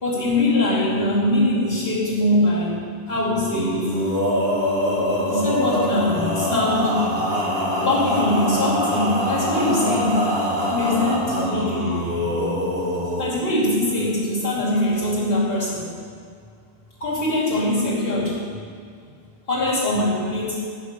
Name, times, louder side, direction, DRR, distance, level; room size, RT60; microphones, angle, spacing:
voice 1, 0.0-2.8 3.1-4.0 5.3-7.0 7.8-10.3 10.7-11.9 13.1-16.0 17.0-18.4 19.5-20.6, left 1 dB, 65° left, -7 dB, 3.0 m, -22 dB
Male singing, 3.5-13.3, equal, 70° right, 2.5 m, -24 dB
9.7 x 6.5 x 6.6 m, 2.2 s
omnidirectional pair, 1.0 m